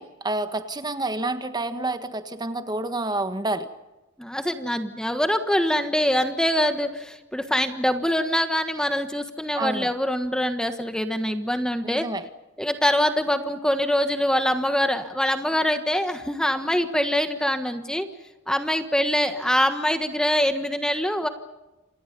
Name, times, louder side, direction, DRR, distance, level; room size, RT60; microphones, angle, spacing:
voice 1, 0.0-3.7 9.6-9.9 11.8-12.2, right 2 dB, 20° right, 9 dB, 1.6 m, -28 dB
voice 2, 4.2-12.1 12.6-18.1 18.5-21.3, equal, 5° left, 7 dB, 1.4 m, -24 dB
28.5 x 28.0 x 5.4 m, 1.0 s
head